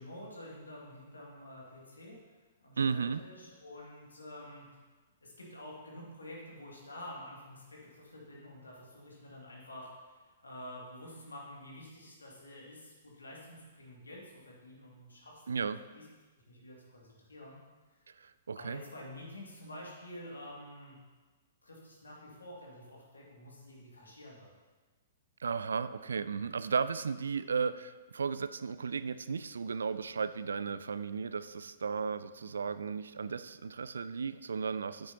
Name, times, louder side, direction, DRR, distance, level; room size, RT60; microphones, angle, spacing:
voice 1, 0.0-2.2 2.6-4.8 5.2-10.2 10.4-16.0 16.5-17.6 18.5-21.0 21.6-24.5, left 1 dB, 80° left, -3 dB, 2.3 m, -49 dB
voice 2, 2.8-3.2 15.5-15.8 18.2-18.8 25.4-35.1, right 5 dB, 70° right, 14 dB, 0.3 m, -35 dB
9.9 x 7.9 x 2.8 m, 1.3 s
figure-of-eight pair, 115°, 0 cm